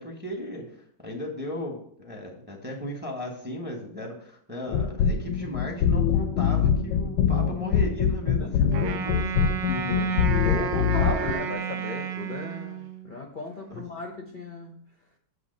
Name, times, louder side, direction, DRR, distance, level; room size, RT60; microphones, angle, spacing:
voice 1, 0.0-10.5 13.7-13.8, left 1 dB, 5° right, 1 dB, 1.0 m, -36 dB
sound 1, 4.7-11.3, left 7 dB, 85° left, 1.4 m, -24 dB
Wind instrument woodwind instrument, 8.7-13.1, right 8 dB, 80° right, 1.3 m, -32 dB
voice 2, 10.1-14.8, left 2 dB, 40° left, 1 dB, 0.7 m, -36 dB
7.9 x 3.3 x 6.4 m, 0.63 s
omnidirectional pair, 2.0 m